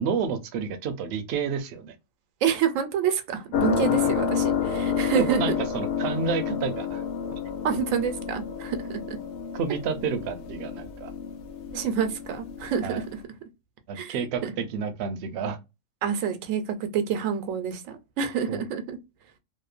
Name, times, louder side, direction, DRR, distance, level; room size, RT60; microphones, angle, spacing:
voice 1, 0.0-1.9 3.9-4.0 5.1-7.0 9.5-11.1 12.8-13.0 13.9-15.6 18.5-18.6, right 5 dB, 65° right, 0.7 m, -30 dB
voice 2, 2.4-5.6 7.6-9.2 11.7-13.0 13.9-14.5 16.0-19.0, right 7 dB, 85° right, 1.0 m, -28 dB
sound 1, 3.5-13.2, left 7 dB, 70° left, 0.8 m, -29 dB
2.8 x 2.1 x 2.3 m
omnidirectional pair, 1.3 m